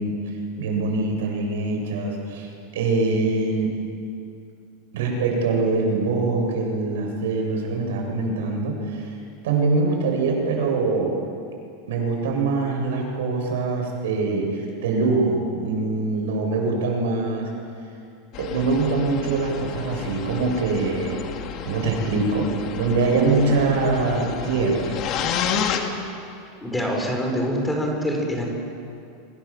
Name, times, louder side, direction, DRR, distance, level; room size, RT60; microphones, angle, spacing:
voice 1, 0.0-3.8 4.9-9.1 9.4-11.2 11.9-17.5 18.4-21.2 21.6-22.5 22.8-25.0, right 3 dB, 85° right, 1 dB, 8.0 m, -23 dB
sound 1, 18.3-25.8, left 8 dB, 40° left, 2.7 m, -31 dB
voice 2, 26.6-28.5, equal, 5° left, 1 dB, 5.1 m, -25 dB
28.5 x 25.5 x 7.6 m, 2.5 s
supercardioid pair, 155°, 0 cm